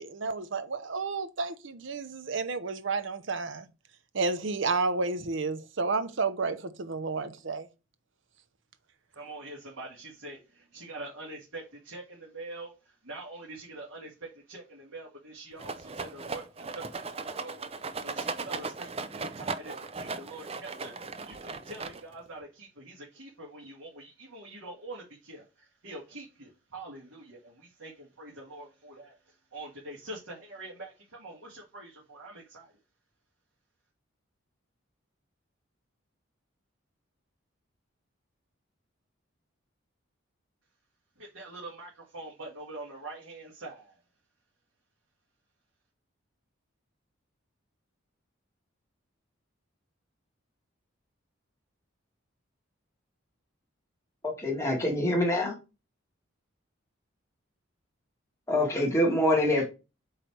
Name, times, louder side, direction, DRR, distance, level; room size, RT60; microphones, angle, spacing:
voice 1, 0.0-3.7 4.1-7.7, right 4 dB, 65° right, 0.7 m, -31 dB
voice 2, 9.1-17.7 18.0-32.7 41.2-44.0, right 2 dB, 85° right, 2.1 m, -45 dB
Rattle, 15.6-22.3, right 4 dB, 30° right, 0.5 m, -37 dB
voice 3, 54.2-55.6 58.5-59.6, left 1 dB, 15° left, 2.1 m, -25 dB
7.9 x 3.3 x 4.6 m
head